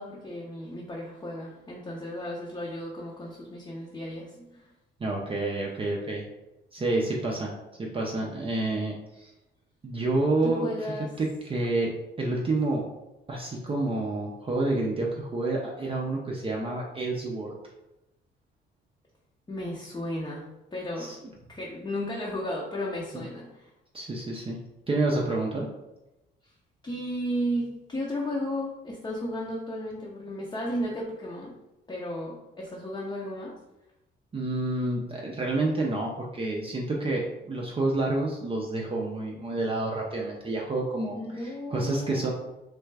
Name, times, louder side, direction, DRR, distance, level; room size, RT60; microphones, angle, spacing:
voice 1, 0.0-4.7 10.4-11.1 19.5-21.1 21.5-23.7 26.8-31.6 31.9-33.5 41.1-42.3, equal, 20° left, -4 dB, 0.6 m, -34 dB
voice 2, 5.0-6.2 6.7-7.5 7.8-9.3 9.8-10.7 11.2-11.9 12.2-12.9 13.3-17.5 21.0-21.2 23.1-23.2 23.9-24.6 24.9-25.7 34.3-42.3, right 2 dB, 30° right, -2 dB, 0.5 m, -29 dB
3.2 x 2.3 x 3.2 m, 0.98 s
cardioid pair, 90°, 20 cm